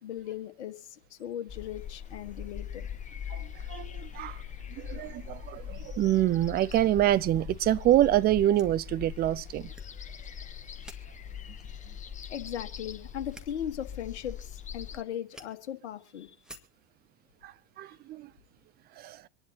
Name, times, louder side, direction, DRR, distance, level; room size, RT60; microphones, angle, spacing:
voice 1, 0.0-2.9 12.3-14.4 14.7-16.3, left 10 dB, 65° left, 1.6 m, -38 dB
sound 1, 1.5-15.0, left 8 dB, 20° left, 1.2 m, -42 dB
voice 2, 3.3-4.4 4.7-9.7 17.4-18.3 19.0-19.2, right 13 dB, 25° right, 0.6 m, -26 dB
sound 2, 7.7-16.9, right 1 dB, ahead, 2.0 m, -57 dB
26.0 x 11.0 x 2.9 m
figure-of-eight pair, 90°, 36 cm